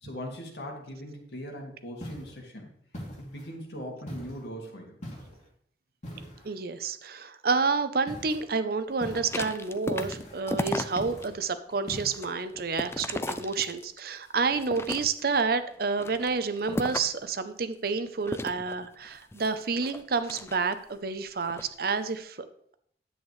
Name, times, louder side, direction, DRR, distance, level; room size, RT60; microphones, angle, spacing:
voice 1, 0.0-2.7 3.2-5.0, equal, 70° left, 1 dB, 2.1 m, -40 dB
sound 1, 2.0-2.4 2.9-3.5 4.1-4.5 5.0-5.4 6.0-6.5 8.1-8.4 9.0-9.4 10.0-10.4 11.0-11.4 11.9-12.2, equal, 40° left, 2.7 m, -41 dB
voice 2, 6.4-22.4, right 4 dB, 60° right, 11 dB, 0.6 m, -29 dB
sound 2, 9.1-11.3 11.7-14.1 14.5-15.4 15.9-17.3 18.2-20.9 21.4-21.7, left 2 dB, 15° left, 0.4 m, -35 dB
10.0 x 8.3 x 3.2 m, 0.66 s
head